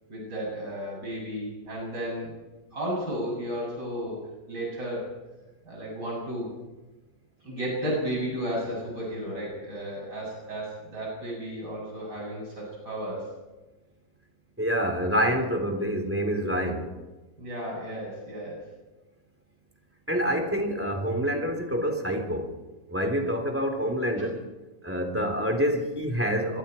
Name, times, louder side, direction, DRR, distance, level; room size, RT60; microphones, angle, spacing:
voice 1, 0.1-2.4 2.7-5.1 5.6-6.5 7.4-13.3 17.4-18.7 24.2-24.3, equal, 75° right, -3 dB, 8.0 m, -33 dB
voice 2, 14.6-16.9 20.1-22.5 22.9-24.4 24.8-26.6, equal, 5° right, 2 dB, 3.4 m, -27 dB
26.0 x 22.0 x 4.5 m, 1.1 s
omnidirectional pair, 1.9 m